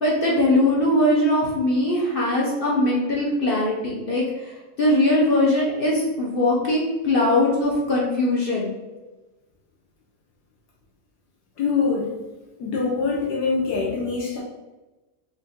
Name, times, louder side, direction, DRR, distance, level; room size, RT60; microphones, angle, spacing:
voice 1, 0.0-4.5 4.8-8.7, left 1 dB, 45° left, -4 dB, 0.7 m, -21 dB
voice 2, 11.6-12.1 12.6-14.4, left 4 dB, 80° left, -2 dB, 1.3 m, -24 dB
4.1 x 2.6 x 3.6 m, 1.1 s
omnidirectional pair, 1.8 m